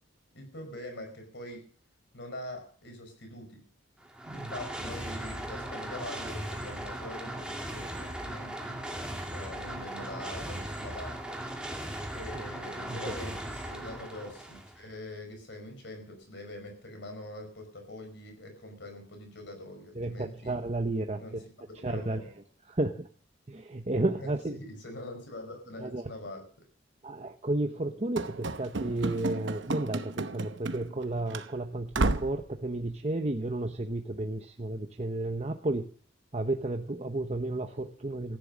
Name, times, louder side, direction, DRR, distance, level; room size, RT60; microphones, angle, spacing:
voice 1, 0.3-1.7 2.1-3.6 4.3-8.8 9.3-11.4 12.1-20.6 21.2-21.4 21.8-22.3 24.2-24.3 24.6-26.4, left 1 dB, 60° left, 5 dB, 5.0 m, -43 dB
sound 1, 4.0-14.8, right 1 dB, 5° right, 2.2 m, -38 dB
voice 2, 19.9-21.4 21.8-22.2 22.7-23.1 23.5-24.6 25.8-26.1 27.0-35.9 36.3-38.4, right 2 dB, 35° right, 5 dB, 0.9 m, -32 dB
Run / Slam, 28.2-31.0 31.3-31.5 31.9-32.4, right 2 dB, 65° right, 1.0 m, -32 dB
15.0 x 10.5 x 6.3 m, 0.44 s
head